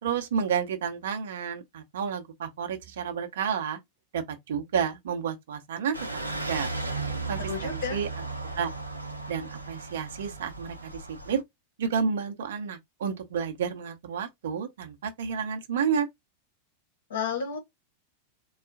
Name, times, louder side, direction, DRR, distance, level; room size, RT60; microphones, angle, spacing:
voice 1, 0.0-3.8 4.1-5.9 6.3-6.7 7.3-8.1 8.6-8.7 9.3-11.4 11.8-16.1, right 7 dB, 60° right, 0.9 m, -30 dB
sound 1, 5.9-11.4, right 3 dB, 85° right, 0.7 m, -35 dB
voice 2, 7.5-8.0 17.1-17.6, left 6 dB, 60° left, 1.5 m, -31 dB
3.9 x 2.4 x 3.6 m
figure-of-eight pair, 90°, 0 cm